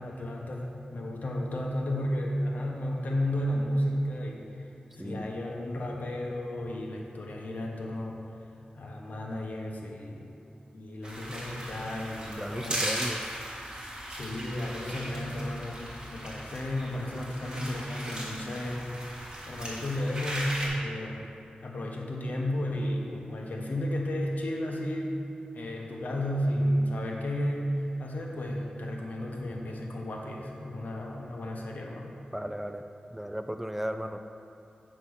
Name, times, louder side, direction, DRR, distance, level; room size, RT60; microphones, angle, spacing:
voice 1, 0.0-4.4 4.9-8.2 8.7-10.3 10.7-13.0 14.1-21.3 21.6-25.2 25.5-32.2, equal, 65° left, -1 dB, 1.3 m, -33 dB
voice 2, 5.0-5.3 12.2-13.2 32.3-32.8 33.1-34.2, equal, 10° right, 6 dB, 0.3 m, -35 dB
sound 1, 11.0-20.7, right 1 dB, 30° right, 1.9 m, -38 dB
8.3 x 5.7 x 5.6 m, 2.8 s
wide cardioid pair, 95°, 3 cm